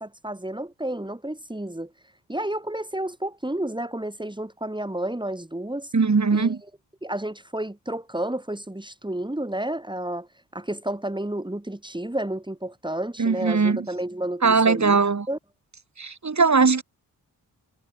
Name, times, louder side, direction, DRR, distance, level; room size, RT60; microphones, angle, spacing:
voice 1, 0.0-1.9 2.3-5.9 6.3-6.6 7.0-15.0 15.3-15.4, right 1 dB, 10° right, 5.6 m, -31 dB
voice 2, 5.9-6.6 13.2-13.9 14.4-15.3 16.0-16.8, right 4 dB, 45° right, 6.6 m, -20 dB
supercardioid pair, 50°, 40 cm